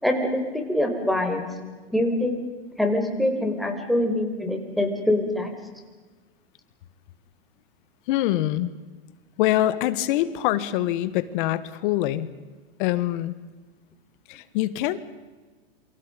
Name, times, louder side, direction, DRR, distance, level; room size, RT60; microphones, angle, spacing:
voice 1, 0.0-1.4 1.9-2.4 2.8-5.5, left 1 dB, ahead, 1 dB, 4.8 m, -24 dB
voice 2, 8.1-8.7 9.4-12.3 12.8-13.4 14.3-15.0, left 14 dB, 50° left, 14 dB, 1.7 m, -24 dB
28.5 x 26.5 x 5.3 m, 1.3 s
hypercardioid pair, 120°, 32 cm